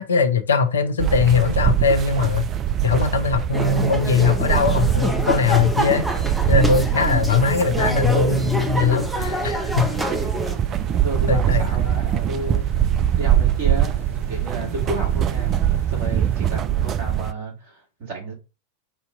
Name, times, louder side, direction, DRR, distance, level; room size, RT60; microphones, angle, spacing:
voice 1, 0.0-2.5 2.8-6.1 6.5-9.9 11.3-11.7, left 5 dB, 65° left, 0.5 m, -20 dB
sound 1, 1.0-17.3, right 10 dB, 30° right, 0.3 m, -23 dB
sound 2, 3.5-10.6, right 1 dB, 5° right, 0.8 m, -27 dB
sound 3, 9.8-16.6, right 2 dB, 85° right, 0.8 m, -41 dB
voice 2, 10.9-12.6 13.1-15.5 15.9-18.3, right 2 dB, 50° right, 2.8 m, -32 dB
5.2 x 2.7 x 3.5 m
figure-of-eight pair, 90°, 0 cm